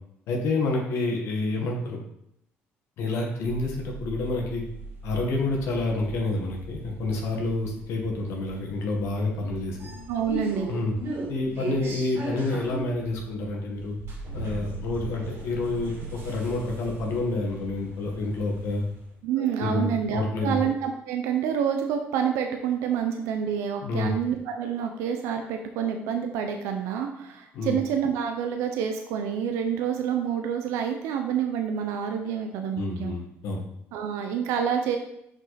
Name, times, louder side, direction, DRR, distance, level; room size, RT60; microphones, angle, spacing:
voice 1, 0.3-2.0 3.0-4.6 5.0-9.8 10.7-11.0 11.3-14.0 14.3-18.8 19.4-20.6 23.8-24.1 27.5-27.8 32.8-33.6, left 2 dB, 75° left, 0 dB, 1.8 m, -28 dB
sound 1, 3.4-19.1, right 2 dB, 65° right, 2.6 m, -39 dB
voice 2, 10.1-10.7 19.2-33.2 33.9-35.0, right 8 dB, 90° right, 4 dB, 0.7 m, -28 dB
6.1 x 5.3 x 4.2 m, 0.78 s
supercardioid pair, 85°, 5 cm